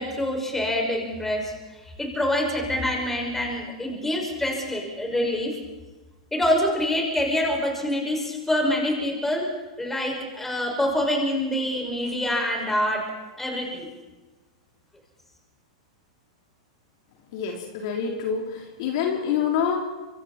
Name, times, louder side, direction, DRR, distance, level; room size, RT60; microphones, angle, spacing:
voice 1, 0.0-1.5 2.0-5.5 6.3-9.4 9.8-13.0 13.4-13.9, left 1 dB, 10° left, 1 dB, 6.3 m, -26 dB
voice 2, 17.3-19.8, left 7 dB, 55° left, 1 dB, 3.8 m, -26 dB
26.0 x 23.5 x 4.5 m, 1.2 s
hypercardioid pair, 105°, 3 cm